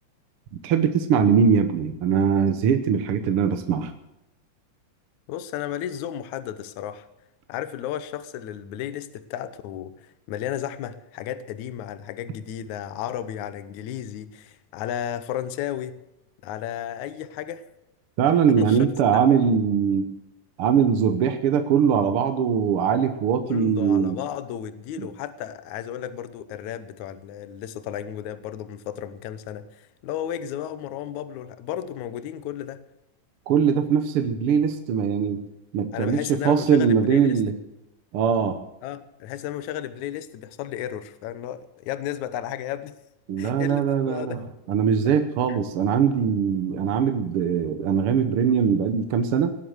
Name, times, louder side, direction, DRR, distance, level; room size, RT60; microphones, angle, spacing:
voice 1, 0.6-3.9 18.2-20.1 20.6-24.2 25.0-25.1 33.5-35.4 35.7-37.5 38.1-38.6 43.3-44.4 44.7-49.6, right 7 dB, 65° right, 8 dB, 1.5 m, -21 dB
voice 2, 5.3-7.1 7.5-16.0 16.4-17.7 18.6-18.8 19.1-19.3 23.4-32.8 35.9-37.4 38.8-43.0 43.4-44.4 45.1-45.2 45.5-45.6, left 10 dB, 75° left, 13 dB, 2.2 m, -33 dB
19.0 x 7.8 x 7.9 m, 0.91 s
omnidirectional pair, 3.4 m